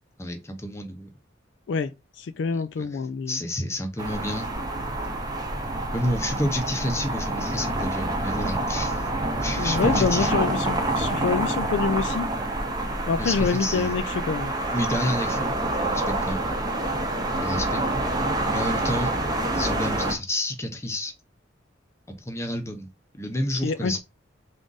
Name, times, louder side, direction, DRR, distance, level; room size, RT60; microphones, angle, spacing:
voice 1, 0.2-1.1 2.5-2.9 3.3-4.5 5.9-9.1 9.4-10.3 13.2-13.9 14.7-15.5 15.8-16.5 17.4-17.8 18.5-19.1 19.5-21.1 22.2-22.9 23.2-24.0, left 1 dB, 15° left, 0.7 m, -29 dB
voice 2, 1.7-3.4 9.6-12.3 13.1-14.5 23.6-24.0, left 5 dB, 65° left, 0.3 m, -26 dB
sound 1, 4.0-20.2, right 2 dB, 20° right, 0.7 m, -27 dB
3.6 x 2.5 x 3.9 m
head